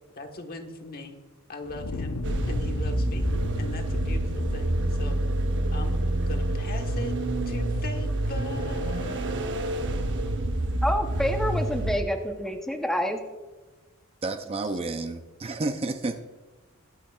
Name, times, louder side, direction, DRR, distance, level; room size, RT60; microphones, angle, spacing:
voice 1, 0.1-1.2 1.5-2.2 2.4-3.3 3.6-5.2 5.7-7.1 7.5-9.2, left 2 dB, 40° left, 4 dB, 1.3 m, -40 dB
Fire, 1.6-6.8, left 2 dB, 90° left, 0.7 m, -35 dB
sound 1, 2.2-12.0, right 1 dB, 55° right, 0.9 m, -27 dB
voice 2, 10.8-13.2, equal, ahead, 4 dB, 0.8 m, -27 dB
voice 3, 14.2-16.2, right 2 dB, 25° right, 7 dB, 0.5 m, -30 dB
22.0 x 9.0 x 2.4 m, 1.2 s
head